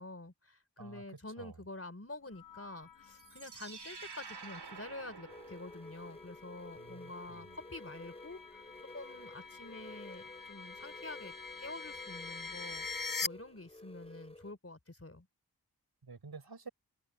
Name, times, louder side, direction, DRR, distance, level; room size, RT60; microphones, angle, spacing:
voice 1, 0.0-8.6 8.9-12.9 13.2-15.3, left 2 dB, 35° left, 4.4 m, -48 dB
sound 1, 2.3-13.3, left 4 dB, 55° left, 1.6 m, -46 dB
sound 2, 3.0-6.2, right 5 dB, 85° right, 2.7 m, -49 dB
sound 3, 5.3-14.5, left 2 dB, 15° left, 3.0 m, -53 dB
voice 2, 6.8-7.6 16.0-16.7, right 4 dB, 70° right, 5.2 m, -50 dB
wide cardioid pair, 55°, 39 cm